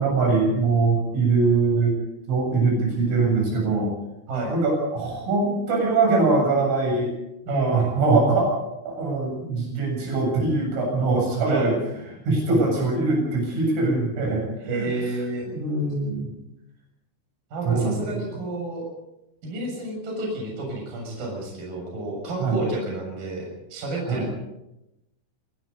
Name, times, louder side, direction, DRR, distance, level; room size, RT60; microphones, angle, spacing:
voice 1, 0.0-2.0 2.3-3.9 4.5-7.1 7.5-11.8 12.3-14.4 14.7-14.9 15.5-16.3 17.7-18.2 22.4-22.6 24.1-24.3, right 3 dB, 80° right, 0 dB, 10.0 m, -22 dB
voice 2, 7.5-8.0 11.5-11.8 14.7-15.4 17.5-18.9 19.4-23.5 23.7-24.3, right 2 dB, 45° right, 0 dB, 8.3 m, -30 dB
26.0 x 19.0 x 5.4 m, 0.90 s
omnidirectional pair, 5.7 m